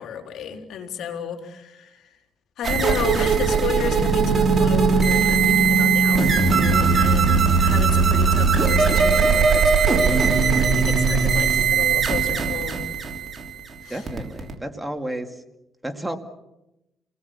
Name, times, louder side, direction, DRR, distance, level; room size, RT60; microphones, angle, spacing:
voice 1, 0.0-2.2 2.6-12.8 13.8-14.1, left 7 dB, 75° left, 4 dB, 3.7 m, -32 dB
sound 1, 2.6-14.5, right 5 dB, 35° right, 3.3 m, -20 dB
sound 2, 3.8-9.5, right 2 dB, 55° right, 5.0 m, -24 dB
voice 2, 13.9-15.4 15.8-16.2, right 1 dB, 10° right, 5 dB, 2.3 m, -31 dB
29.0 x 19.5 x 7.1 m, 0.91 s
cardioid pair, 100°, 0 cm